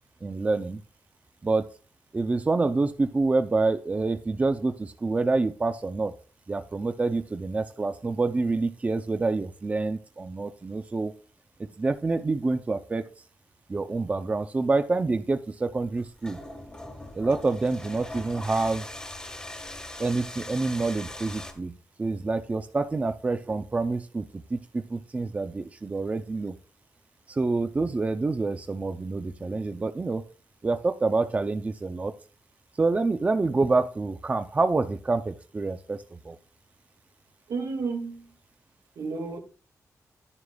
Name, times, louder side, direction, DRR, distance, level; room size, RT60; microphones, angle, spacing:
voice 1, 0.2-0.8 1.4-1.6 2.1-6.1 6.5-11.1 11.8-13.0 13.7-16.4 17.1-18.8 20.0-26.5 27.3-30.2 30.6-32.1 32.8-36.4, right 3 dB, 25° right, 0.5 m, -27 dB
sound 1, 15.9-21.5, left 1 dB, 15° left, 1.5 m, -40 dB
voice 2, 37.5-38.3 39.0-39.4, right 4 dB, 85° right, 1.9 m, -32 dB
12.0 x 9.6 x 2.3 m
wide cardioid pair, 160°, 6 cm